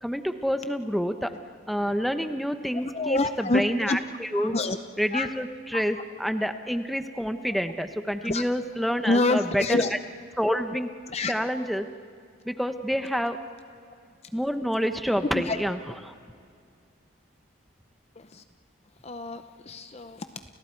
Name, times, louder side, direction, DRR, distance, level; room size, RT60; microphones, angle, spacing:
voice 1, 0.0-1.3 1.7-4.5 5.0-9.8 10.4-10.9 11.3-11.9 12.4-13.4 14.3-15.8 16.0-16.1, equal, ahead, 7 dB, 0.9 m, -28 dB
voice 2, 2.7-4.0 4.3-4.8 5.1-5.3 8.2-8.4 9.0-9.9 11.1-11.3 15.3-15.6 18.2-18.4 19.0-20.3, left 2 dB, 30° left, 8 dB, 0.6 m, -27 dB
30.0 x 29.5 x 4.6 m, 2.3 s
head